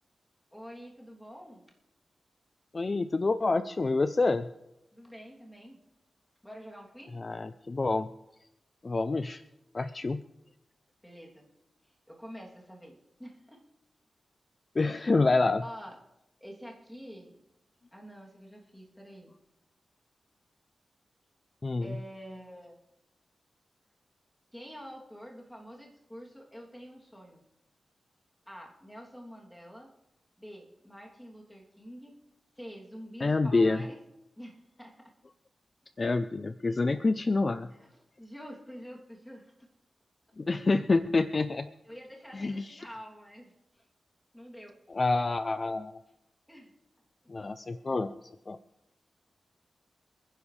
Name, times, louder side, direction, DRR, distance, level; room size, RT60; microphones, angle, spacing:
voice 1, 0.5-1.7 4.9-5.8 6.4-7.2 11.0-11.5 11.8-13.6 15.6-16.0 16.4-17.4 17.9-19.4 21.8-22.8 24.5-27.4 28.5-29.9 30.4-32.1 32.6-34.0 34.4-35.1 37.7-39.7 41.8-43.8 44.3-44.8 46.5-46.7, equal, 5° left, -1 dB, 2.9 m, -47 dB
voice 2, 2.7-4.5 7.1-8.1 8.8-9.4 9.7-10.2 14.8-15.6 21.6-22.0 33.2-33.8 36.0-37.7 40.4-41.7 42.3-42.8 44.9-45.9 47.3-48.6, left 3 dB, 40° left, 11 dB, 0.5 m, -27 dB
27.5 x 10.5 x 3.3 m, 0.89 s
wide cardioid pair, 95°, 0 cm